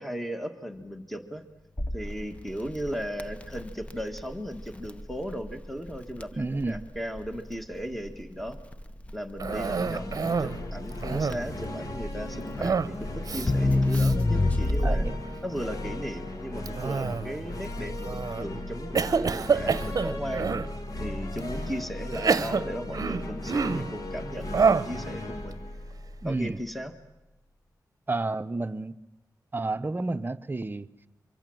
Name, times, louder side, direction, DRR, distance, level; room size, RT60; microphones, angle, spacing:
voice 1, 0.0-1.4 1.9-8.6 9.1-15.1 15.4-20.5 21.0-25.6 26.2-26.9, equal, ahead, 1.6 m, -36 dB
Crackle, 1.8-15.3, left 2 dB, 20° left, 0.9 m, -29 dB
voice 2, 6.3-6.9 14.8-15.2 26.2-26.6 28.1-29.0 29.5-30.9, right 2 dB, 30° right, 0.8 m, -31 dB
sound 1, 9.4-26.9, left 1 dB, 55° left, 2.5 m, -37 dB
Cough, 9.4-10.6 10.9-11.6 12.6-13.0 13.2-13.5 13.9-14.1 14.7-15.1 16.7-17.4 18.0-18.4 18.9-20.7 21.4-21.5 22.1-23.9 24.5-25.0, right 5 dB, 55° right, 0.8 m, -27 dB
25.0 x 24.0 x 7.8 m
wide cardioid pair, 125°, 7 cm